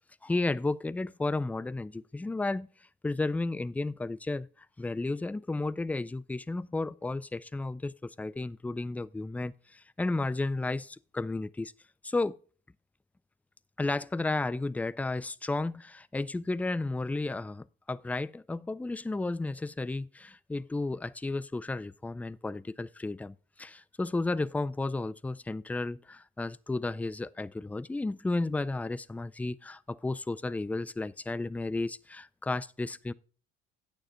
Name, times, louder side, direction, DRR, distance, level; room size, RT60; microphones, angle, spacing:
voice 1, 0.2-2.7 3.0-4.5 4.8-11.7 12.0-12.4 13.8-33.1, left 2 dB, 5° left, 0.3 m, -33 dB
9.1 x 6.8 x 5.1 m
hypercardioid pair, 65°, 30 cm